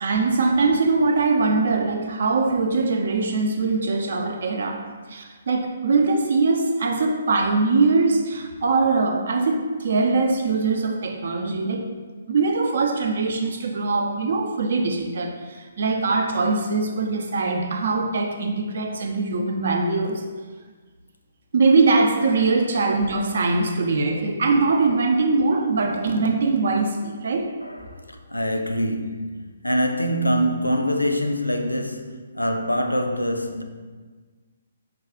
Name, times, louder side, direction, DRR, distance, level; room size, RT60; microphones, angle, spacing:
voice 1, 0.0-4.8 5.1-11.9 12.3-20.2 21.5-27.5, right 3 dB, 55° right, 0.5 m, -22 dB
voice 2, 27.6-33.6, equal, 85° left, 0.4 m, -25 dB
4.7 x 2.3 x 3.6 m
figure-of-eight pair, 130°, 0 cm